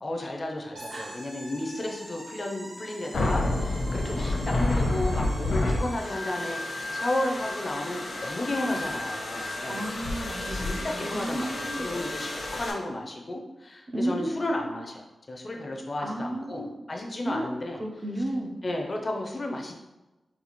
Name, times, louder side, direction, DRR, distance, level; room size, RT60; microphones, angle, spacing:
voice 1, 0.0-9.9 10.5-15.0 15.3-17.8 18.6-19.7, left 1 dB, 35° left, 1 dB, 0.4 m, -33 dB
sound 1, 0.8-6.3, right 1 dB, 85° right, 1.0 m, -44 dB
sound 2, 3.1-12.7, left 2 dB, 85° left, 0.8 m, -30 dB
voice 2, 9.7-11.9 13.9-14.6 16.0-16.9 17.2-17.5 17.8-18.6, right 1 dB, 30° right, 2 dB, 0.4 m, -33 dB
4.1 x 2.3 x 2.9 m, 1.0 s
wide cardioid pair, 155°, 0 cm